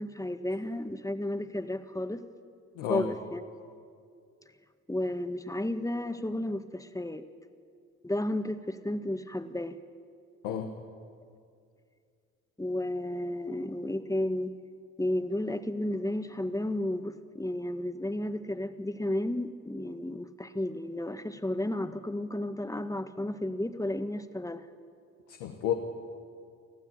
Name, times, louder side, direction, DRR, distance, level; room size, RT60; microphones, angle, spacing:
voice 1, 0.0-2.3 2.9-3.5 4.9-7.2 8.0-9.8 12.6-14.5 15.0-24.7, left 1 dB, 10° left, 9 dB, 1.8 m, -32 dB
voice 2, 2.7-3.1 10.4-10.7 25.3-25.7, left 10 dB, 85° left, 3 dB, 1.5 m, -31 dB
24.0 x 15.5 x 8.8 m, 2.3 s
hypercardioid pair, 45°, 36 cm